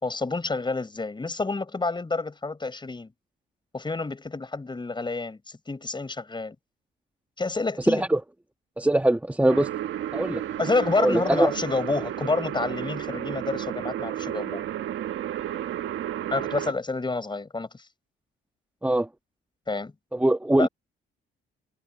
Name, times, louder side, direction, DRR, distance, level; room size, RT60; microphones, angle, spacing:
voice 1, 0.0-3.1 3.7-6.6 7.4-8.0 10.6-14.6 16.3-17.8 19.7-19.9 20.6-20.7, left 3 dB, 25° left, 6.4 m, -28 dB
voice 2, 7.9-8.2 8.8-9.7 10.1-10.4 11.0-11.5 18.8-19.1 20.1-20.7, right 1 dB, 5° right, 1.8 m, -22 dB
sound 1, 9.5-16.7, right 11 dB, 75° right, 1.6 m, -32 dB
cardioid pair, 90°, 20 cm